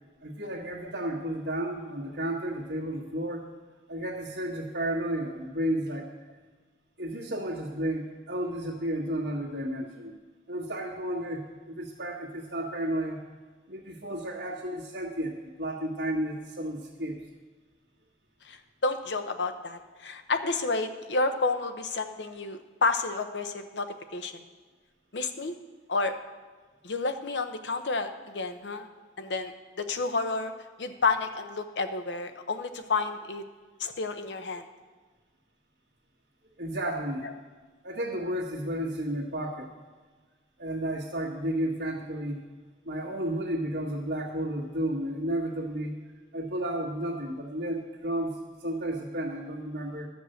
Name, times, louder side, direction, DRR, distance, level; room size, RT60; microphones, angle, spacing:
voice 1, 0.2-3.4 3.9-6.1 7.0-10.1 10.5-13.2 13.7-17.2 36.6-37.4 37.8-39.7 40.6-42.4 42.8-45.9 46.3-50.1, right 1 dB, 70° right, -7 dB, 1.6 m, -32 dB
voice 2, 18.4-23.9 24.1-24.3 25.1-25.5 25.9-26.1 26.8-28.9 29.2-29.5 29.8-30.5 30.8-33.4 33.8-34.6 37.2-37.3, left 3 dB, 75° left, 8 dB, 0.8 m, -30 dB
12.5 x 5.3 x 7.8 m, 1.4 s
head